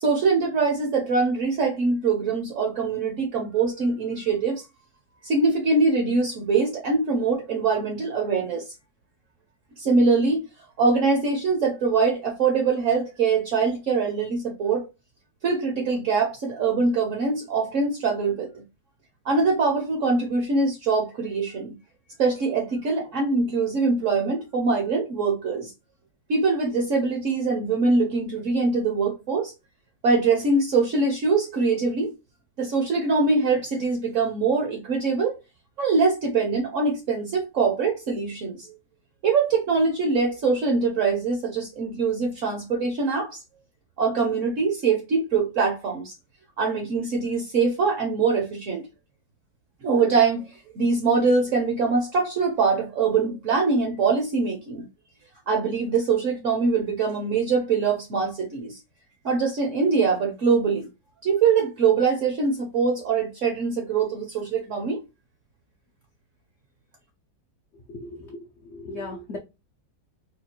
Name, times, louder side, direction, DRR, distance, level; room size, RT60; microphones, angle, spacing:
voice 1, 0.0-4.6 5.2-8.6 9.8-10.5 10.8-14.9 15.4-18.6 19.2-21.8 22.2-25.7 26.3-29.5 30.0-32.1 32.6-35.4 35.8-38.6 39.2-43.4 44.0-46.1 46.6-48.8 49.8-50.5 50.7-54.9 55.5-58.8 59.2-60.9 61.2-65.0, right 4 dB, 60° right, 0.8 m, -23 dB
voice 2, 67.9-69.4, left 2 dB, 90° left, 0.6 m, -37 dB
4.2 x 2.3 x 2.9 m
omnidirectional pair, 2.0 m